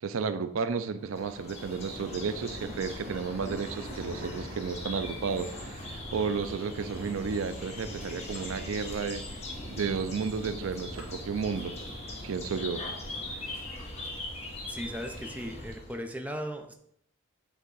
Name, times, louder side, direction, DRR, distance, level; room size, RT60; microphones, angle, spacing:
voice 1, 0.0-9.2 9.7-11.8 12.2-12.8, right 5 dB, 85° right, 12 dB, 0.4 m, -32 dB
Thunder, 1.0-15.7, equal, 70° right, 1.7 m, -45 dB
sound 1, 1.1-16.0, left 1 dB, 30° left, 1.4 m, -41 dB
voice 2, 14.7-16.7, equal, 5° right, 5 dB, 0.5 m, -37 dB
8.3 x 3.6 x 3.9 m, 0.71 s
head